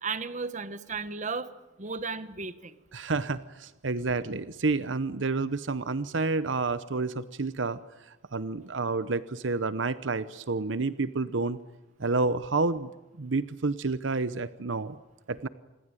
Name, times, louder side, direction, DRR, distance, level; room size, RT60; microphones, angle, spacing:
voice 1, 0.0-1.5 1.8-2.7, right 4 dB, 40° right, 12 dB, 1.4 m, -34 dB
voice 2, 2.9-7.8 8.1-11.6 12.0-12.9 13.2-15.0 15.3-15.5, right 3 dB, 75° right, 14 dB, 0.8 m, -29 dB
27.5 x 21.0 x 9.1 m, 1.0 s
head